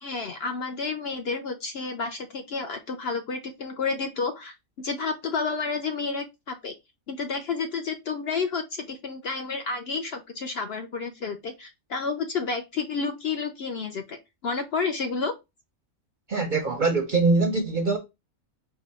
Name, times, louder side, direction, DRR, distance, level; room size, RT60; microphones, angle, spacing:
voice 1, 0.0-6.7 7.1-14.2 14.4-15.3, left 4 dB, 60° left, 0.7 m, -30 dB
voice 2, 16.3-18.0, right 3 dB, 50° right, 0.6 m, -23 dB
4.8 x 2.2 x 4.0 m
omnidirectional pair, 1.4 m